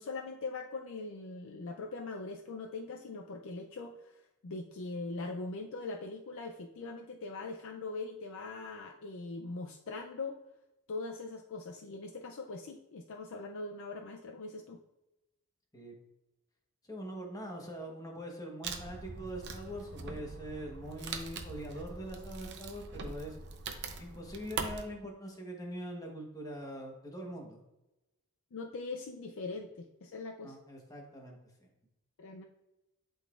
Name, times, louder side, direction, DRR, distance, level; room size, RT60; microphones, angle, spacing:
voice 1, 0.0-10.4 10.9-14.8 28.5-30.6 32.2-32.4, left 3 dB, 65° left, 2 dB, 0.5 m, -41 dB
voice 2, 16.9-23.3 24.0-27.6 30.4-31.7, equal, 15° left, 1 dB, 1.1 m, -43 dB
Wood, 18.6-24.8, right 4 dB, 55° right, 0.6 m, -42 dB
11.5 x 3.9 x 2.4 m, 0.96 s
head